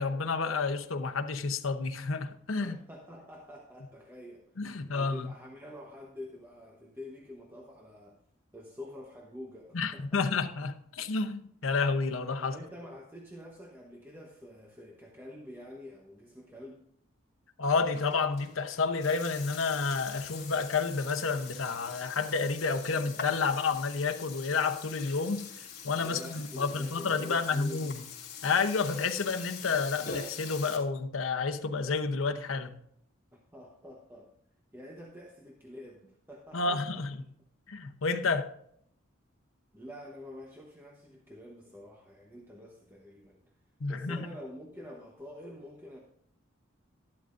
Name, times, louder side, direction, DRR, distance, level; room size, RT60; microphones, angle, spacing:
voice 1, 0.0-2.8 4.6-5.3 9.7-12.5 17.6-25.4 25.8-28.0 28.4-32.8 36.5-37.2 37.7-38.5 43.8-44.3, left 4 dB, 85° left, 0.8 m, -30 dB
voice 2, 2.6-4.7 4.9-8.2 8.5-10.4 12.4-16.8 26.0-27.8 33.3-34.3 34.7-37.3 39.7-43.4 43.9-46.0, left 1 dB, 10° right, 1.0 m, -47 dB
Burping eructation, 17.6-30.8, left 6 dB, 50° left, 3.1 m, -44 dB
12.0 x 12.0 x 2.6 m
head